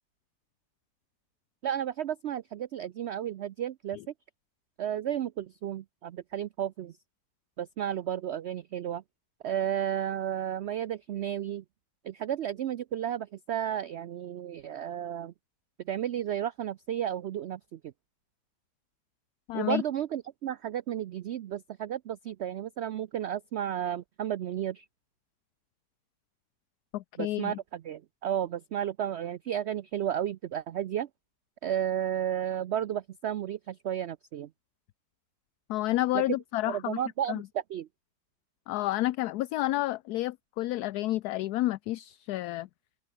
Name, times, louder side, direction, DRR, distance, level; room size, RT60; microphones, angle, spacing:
voice 1, 1.6-4.0 4.8-6.9 7.6-9.0 9.4-11.6 12.0-15.3 15.9-17.9 19.5-24.9 27.2-31.1 31.6-34.5 36.1-36.2 36.7-37.9, right 10 dB, 85° right, 0.5 m, -33 dB
voice 2, 19.5-19.8 26.9-27.6 35.7-37.0 37.3-37.4 38.7-42.7, left 16 dB, 75° left, 1.1 m, -30 dB
omnidirectional pair, 1.7 m